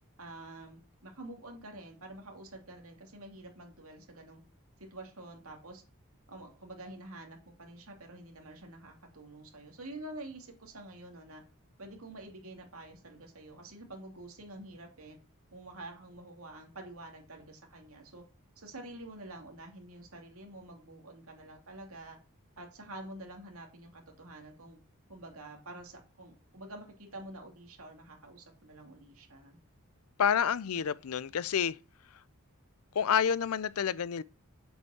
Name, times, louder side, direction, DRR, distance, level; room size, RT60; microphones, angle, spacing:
voice 1, 0.2-4.4 4.8-5.8 6.3-11.4 11.8-15.2 15.5-18.2 18.6-22.2 22.6-24.8 25.1-29.6, right 2 dB, 70° right, 2.8 m, -48 dB
voice 2, 30.2-31.8 32.9-34.2, left 7 dB, 75° left, 0.5 m, -28 dB
7.9 x 5.4 x 7.2 m
head